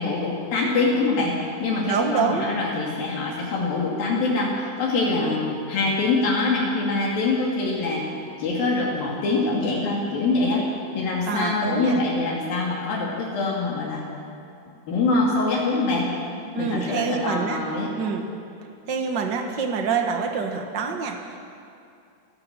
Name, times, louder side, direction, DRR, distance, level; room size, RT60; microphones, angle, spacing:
voice 1, 0.0-1.3 1.6-8.1 8.4-10.6 10.9-14.0 14.9-16.1 16.6-17.9, left 3 dB, 65° left, -3 dB, 4.0 m, -24 dB
voice 2, 1.9-2.4 5.2-5.4 11.2-12.0 16.5-17.6 18.0-18.3 18.9-21.5, right 5 dB, 85° right, 4 dB, 0.9 m, -26 dB
29.5 x 13.5 x 7.5 m, 2.5 s
omnidirectional pair, 4.5 m